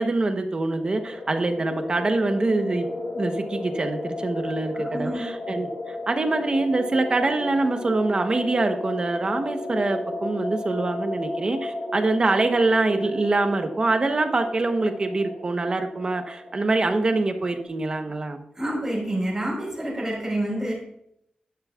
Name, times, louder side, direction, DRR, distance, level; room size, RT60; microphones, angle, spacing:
voice 1, 0.0-2.8 3.2-18.4, right 2 dB, 35° right, 6 dB, 0.9 m, -24 dB
sound 1, 0.7-17.6, left 2 dB, 65° left, 2.5 m, -34 dB
voice 2, 4.7-5.3 18.5-20.7, right 1 dB, 15° right, -4 dB, 4.3 m, -28 dB
11.5 x 10.5 x 2.4 m, 0.75 s
wide cardioid pair, 165°, 3 cm